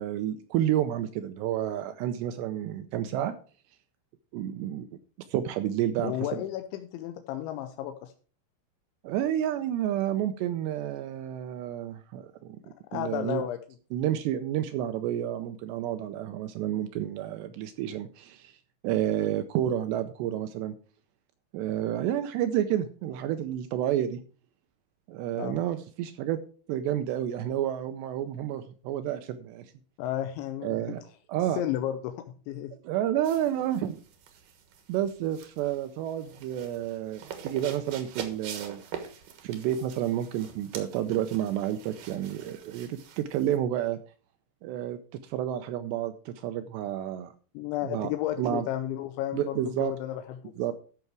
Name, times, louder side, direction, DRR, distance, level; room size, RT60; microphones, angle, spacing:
voice 1, 0.0-3.4 4.3-4.9 5.3-6.4 9.0-13.4 13.9-18.6 18.8-20.7 21.5-24.2 25.1-26.4 26.7-29.7 30.6-31.0 31.3-31.6 32.8-34.0 34.9-38.8 39.4-44.0 44.6-45.0 45.2-47.3 47.8-48.1 48.4-48.7 49.3-49.9 50.6-50.7, right 11 dB, 80° right, 9 dB, 2.6 m, -30 dB
voice 2, 6.0-8.1 12.9-13.6 25.4-25.6 30.0-31.0 31.5-32.7 47.5-50.7, left 12 dB, 85° left, 7 dB, 3.0 m, -33 dB
sound 1, 33.2-43.6, right 8 dB, 65° right, 2.4 m, -44 dB
13.5 x 5.9 x 4.7 m, 0.40 s
omnidirectional pair, 5.3 m